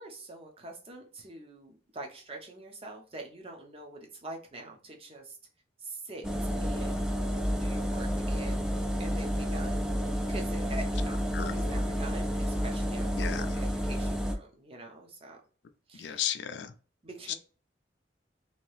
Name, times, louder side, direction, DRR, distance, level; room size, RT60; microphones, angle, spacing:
voice 1, 0.0-5.4 5.8-7.1 7.6-9.8 10.3-15.4 15.9-16.3 17.0-17.3, right 2 dB, 30° right, 0.7 m, -45 dB
sound 1, 6.2-14.3, equal, 5° right, 0.3 m, -30 dB
voice 2, 11.3-11.7 13.1-13.5 16.0-16.7 17.3-17.4, left 9 dB, 75° left, 0.4 m, -34 dB
2.9 x 2.7 x 3.2 m
head